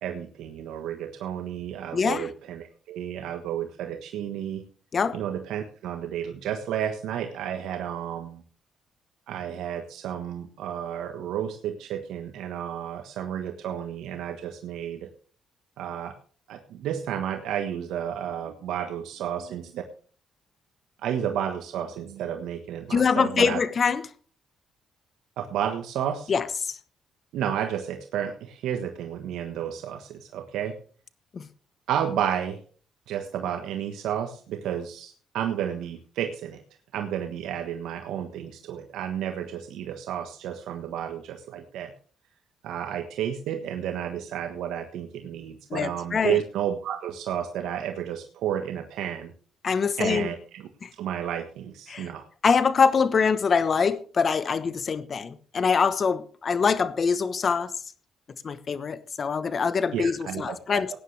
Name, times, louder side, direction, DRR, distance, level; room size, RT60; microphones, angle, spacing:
voice 1, 0.0-4.6 5.1-8.4 9.3-15.1 15.8-16.1 16.5-19.8 21.0-23.6 25.4-26.3 27.3-30.8 31.9-32.6 33.1-36.6 36.9-41.9 42.6-49.3 50.0-50.6 51.0-52.2 59.9-61.0, right 9 dB, 85° right, 1.3 m, -31 dB
voice 2, 1.9-2.3 4.9-5.2 22.9-24.0 26.3-26.8 31.3-31.5 45.7-46.4 49.6-50.3 50.8-50.9 51.9-52.1 52.4-57.7 58.4-61.0, left 5 dB, 45° left, 1.1 m, -24 dB
17.0 x 10.0 x 3.3 m
cardioid pair, 90°, 0 cm